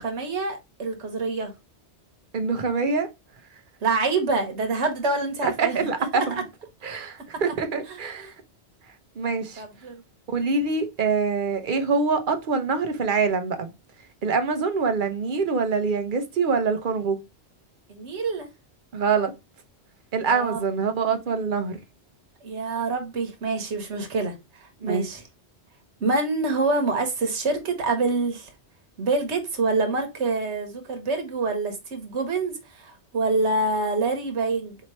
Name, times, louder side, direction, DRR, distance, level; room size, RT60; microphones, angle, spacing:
voice 1, 0.0-1.5 3.8-5.8 6.1-6.4 7.9-8.3 9.6-10.0 17.9-18.5 20.3-20.6 22.4-25.2 26.0-28.5 29.0-34.8, right 3 dB, 90° right, 1.3 m, -26 dB
voice 2, 2.3-3.1 5.4-6.4 6.8-8.3 9.2-9.6 10.3-13.7 14.2-17.2 18.9-19.3 20.1-21.8 24.8-25.1, right 4 dB, 50° right, 0.8 m, -25 dB
4.3 x 2.9 x 3.0 m
omnidirectional pair, 1.1 m